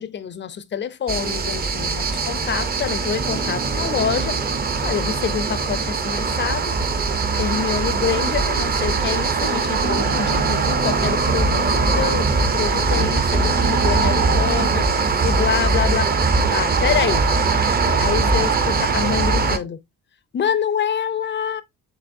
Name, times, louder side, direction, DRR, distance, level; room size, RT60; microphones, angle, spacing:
voice 1, 0.0-4.4 4.8-6.8 7.4-16.1 16.5-17.3 18.0-19.8 20.3-21.6, left 8 dB, 35° left, 0.4 m, -26 dB
sound 1, 1.1-19.6, right 4 dB, 25° right, 0.5 m, -21 dB
Piano, 3.1-12.5 12.9-14.9, right 2 dB, 70° right, 3.4 m, -33 dB
6.8 x 3.0 x 2.5 m
wide cardioid pair, 175°, 36 cm